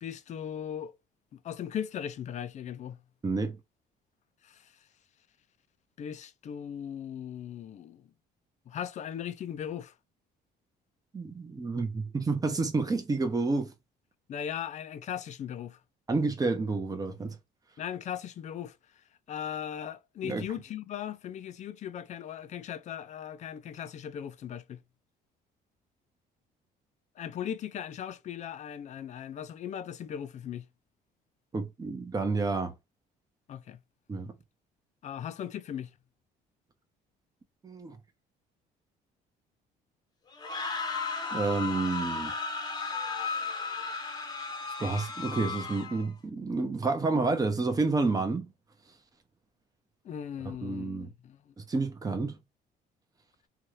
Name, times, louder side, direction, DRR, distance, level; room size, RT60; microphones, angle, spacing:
voice 1, 0.0-0.9 1.4-3.0 4.4-4.7 6.0-8.1 8.7-9.9 14.3-15.8 17.8-18.8 19.3-24.8 27.2-30.7 33.5-33.8 35.0-35.9 50.0-51.5, left 9 dB, 45° left, 0.4 m, -38 dB
voice 2, 3.2-3.6 11.1-13.7 16.1-17.4 20.2-20.4 31.5-32.7 34.1-34.3 37.6-38.0 41.3-42.3 44.8-48.5 50.6-51.1 51.6-52.4, right 3 dB, 20° right, 0.8 m, -29 dB
sound 1, 40.3-46.1, left 4 dB, 25° left, 0.8 m, -35 dB
2.7 x 2.4 x 3.2 m
cardioid pair, 110°, 17 cm